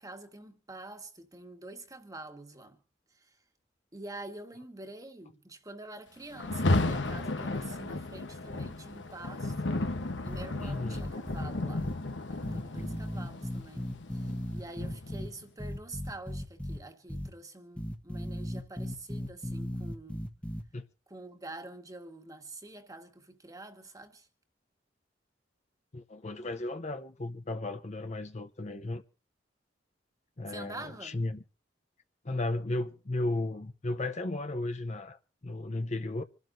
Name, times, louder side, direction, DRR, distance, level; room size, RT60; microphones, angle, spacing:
voice 1, 0.0-2.8 3.1-3.4 3.9-9.5 10.2-11.9 12.3-20.3 21.1-24.3 30.5-31.2, right 2 dB, 20° right, 1.6 m, -46 dB
Rain, 6.4-15.4, left 2 dB, 80° left, 1.1 m, -33 dB
sound 1, 10.3-11.4 11.8-11.9 12.4-15.3 15.6-16.8 17.1-17.3 17.8-20.6, equal, 5° left, 1.3 m, -36 dB
voice 2, 10.6-11.0 12.7-12.8 20.7-20.8 25.9-29.0 30.4-31.4 32.2-36.2, left 2 dB, 40° left, 0.8 m, -35 dB
27.0 x 12.0 x 2.7 m
head